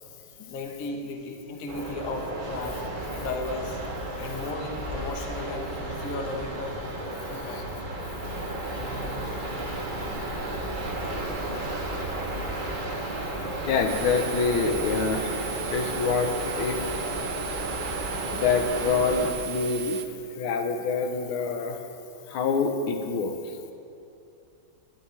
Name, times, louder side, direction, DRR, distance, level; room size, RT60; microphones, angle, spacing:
voice 1, 0.5-3.8 4.2-6.8 7.3-7.6 9.0-9.3, left 2 dB, 55° left, 2 dB, 1.1 m, -35 dB
sound 1, 1.7-19.3, right 1 dB, 50° right, 0.6 m, -33 dB
sound 2, 2.6-16.0, equal, 5° left, 0.9 m, -44 dB
voice 2, 13.7-16.9 18.3-20.0 20.4-21.8 22.3-23.4, left 4 dB, 90° left, 5 dB, 1.6 m, -26 dB
sound 3, 13.9-20.1, right 11 dB, 75° right, 1.4 m, -37 dB
11.0 x 9.2 x 3.2 m, 2.7 s
omnidirectional pair, 2.2 m